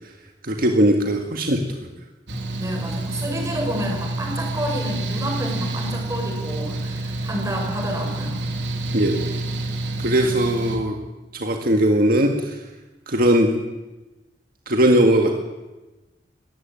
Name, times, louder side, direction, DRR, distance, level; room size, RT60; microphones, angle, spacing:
voice 1, 0.4-1.6 8.9-9.3 10.0-11.0 11.3-12.6 13.1-13.5 14.7-15.3, right 1 dB, 55° right, 3 dB, 1.9 m, -19 dB
Mechanical fan, 2.3-10.8, right 2 dB, 90° right, 3.4 m, -28 dB
voice 2, 2.6-8.5, equal, 20° right, 1 dB, 6.1 m, -29 dB
21.5 x 14.5 x 9.2 m, 1.1 s
head